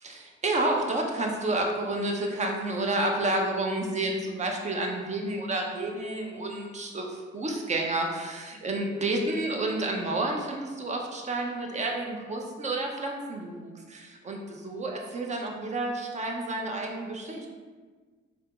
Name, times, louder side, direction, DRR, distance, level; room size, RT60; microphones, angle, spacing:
voice 1, 0.0-17.5, right 2 dB, 35° right, 1 dB, 0.7 m, -30 dB
3.5 x 2.9 x 3.5 m, 1.4 s
cardioid pair, 90°, 20 cm